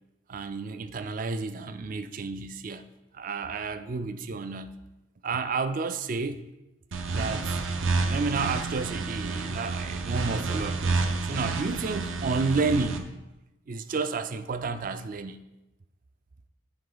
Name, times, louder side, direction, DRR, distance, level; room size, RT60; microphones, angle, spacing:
voice 1, 0.3-2.8 3.1-4.8 5.2-6.4 7.1-7.6 8.0-13.1 13.7-15.4, right 4 dB, 40° right, 0.4 m, -31 dB
sound 1, 6.9-13.0, right 3 dB, 75° right, 0.7 m, -29 dB
9.7 x 4.5 x 3.9 m
head